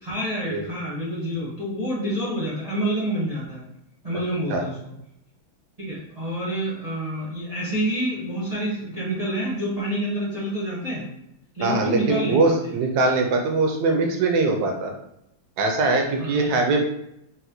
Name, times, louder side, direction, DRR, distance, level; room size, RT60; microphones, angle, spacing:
voice 1, 0.0-3.6 4.0-4.8 5.8-11.1 11.5-12.7 16.1-16.4, equal, 45° right, -8 dB, 0.5 m, -28 dB
voice 2, 11.6-14.9 15.6-16.8, right 3 dB, 70° right, 2 dB, 1.0 m, -22 dB
4.1 x 2.1 x 2.6 m, 0.79 s
omnidirectional pair, 2.0 m